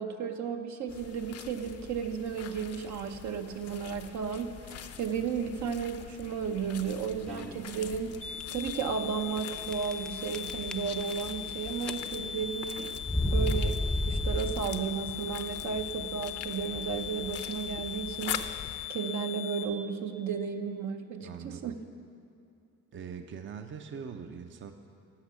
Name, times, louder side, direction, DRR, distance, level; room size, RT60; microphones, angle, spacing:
voice 1, 0.0-8.1 8.5-12.9 13.2-18.6 18.9-21.7, right 6 dB, 70° right, 5 dB, 0.9 m, -34 dB
sound 1, 0.9-18.9, left 8 dB, 55° left, 0.7 m, -44 dB
sound 2, 7.3-7.7 8.3-8.4 8.7-8.8 9.7-10.1 10.3-11.5 11.8-12.3 13.0-15.0, left 1 dB, ahead, 0.4 m, -30 dB
sound 3, 8.2-19.6, left 10 dB, 75° left, 1.0 m, -39 dB
voice 2, 21.2-21.8 22.9-24.7, right 6 dB, 40° right, 6 dB, 0.6 m, -42 dB
11.5 x 6.0 x 8.3 m, 2.6 s
cardioid pair, 90°, 30 cm